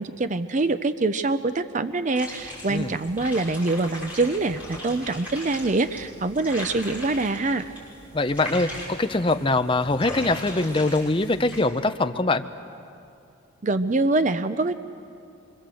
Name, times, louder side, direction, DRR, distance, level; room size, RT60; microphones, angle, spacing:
voice 1, 0.0-7.7 13.6-14.7, right 2 dB, 40° right, 10 dB, 0.6 m, -24 dB
sound 1, 2.1-11.6, left 1 dB, 10° right, 6.9 m, -39 dB
voice 2, 8.1-12.4, left 2 dB, 25° left, 8 dB, 0.7 m, -23 dB
25.0 x 24.0 x 7.8 m, 2.6 s
head